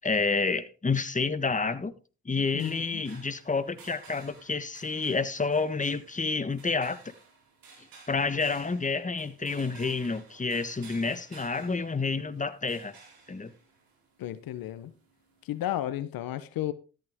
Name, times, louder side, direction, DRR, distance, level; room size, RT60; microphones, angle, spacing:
voice 1, 0.0-1.9 2.2-7.1 8.1-12.9 13.3-13.5, left 4 dB, 20° left, 1.3 m, -29 dB
sound 1, 2.4-15.6, right 4 dB, 80° right, 5.0 m, -55 dB
voice 2, 2.5-3.0 14.2-14.9 15.4-16.7, left 13 dB, 75° left, 1.0 m, -33 dB
13.5 x 9.4 x 3.6 m
supercardioid pair, 55°, 35 cm